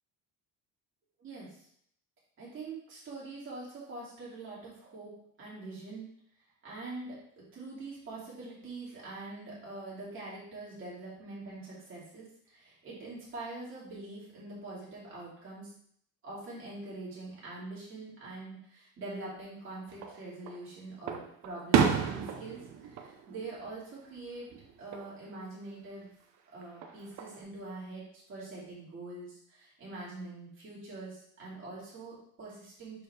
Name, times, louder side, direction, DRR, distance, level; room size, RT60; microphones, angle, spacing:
voice 1, 1.2-1.7 2.4-5.1 5.4-6.1 6.6-15.7 16.2-24.5 24.8-26.1 26.5-33.0, right 2 dB, 35° right, -7 dB, 2.6 m, -44 dB
Fireworks, 19.9-20.6 21.1-24.2 24.5-25.1 26.6-27.4, right 7 dB, 50° right, 0.7 m, -31 dB
6.3 x 4.5 x 3.4 m, 0.67 s
cardioid pair, 175°, 36 cm